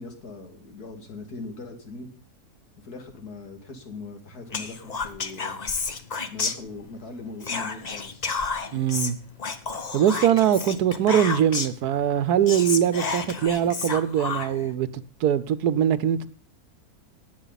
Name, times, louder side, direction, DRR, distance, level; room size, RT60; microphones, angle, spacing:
voice 1, 0.0-2.1 2.8-5.6 6.3-8.3, left 3 dB, 85° left, 2.8 m, -40 dB
Whispering, 4.5-7.0 7.4-11.8 12.2-12.3 12.5-14.7, left 4 dB, 35° left, 0.8 m, -31 dB
voice 2, 8.7-9.2 9.9-14.9 15.2-16.3, right 10 dB, 85° right, 1.3 m, -22 dB
19.5 x 8.4 x 4.0 m
omnidirectional pair, 1.6 m